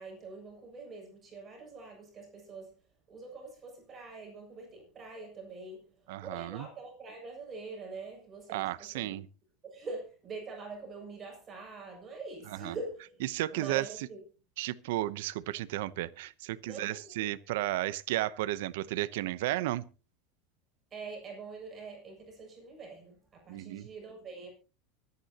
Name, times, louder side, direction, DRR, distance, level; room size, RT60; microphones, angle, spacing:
voice 1, 0.0-2.7 3.1-5.8 6.2-9.1 9.6-13.2 13.5-14.2 16.6-17.3 20.9-24.5, right 3 dB, 25° right, 6.9 m, -44 dB
voice 2, 6.1-6.7 8.5-9.3 12.6-12.7 13.3-13.9 14.6-19.8 23.5-23.9, right 15 dB, 75° right, 0.8 m, -33 dB
24.5 x 9.7 x 2.9 m
supercardioid pair, 155°, 0 cm